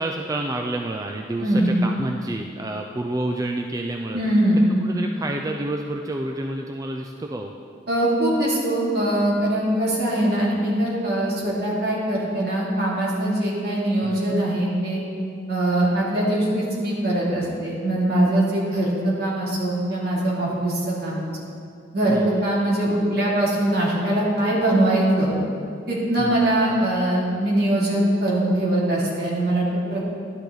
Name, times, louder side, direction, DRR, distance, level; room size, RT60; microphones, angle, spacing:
voice 1, 0.0-4.2 4.8-7.5 14.0-14.4 22.1-22.4 26.2-26.5, right 1 dB, 20° right, 3 dB, 0.4 m, -29 dB
voice 2, 1.4-1.7 4.1-4.7 7.9-15.0 15.5-21.2 21.9-25.4 25.9-30.0, right 1 dB, 60° right, -6 dB, 2.7 m, -22 dB
11.5 x 9.7 x 3.9 m, 2.5 s
head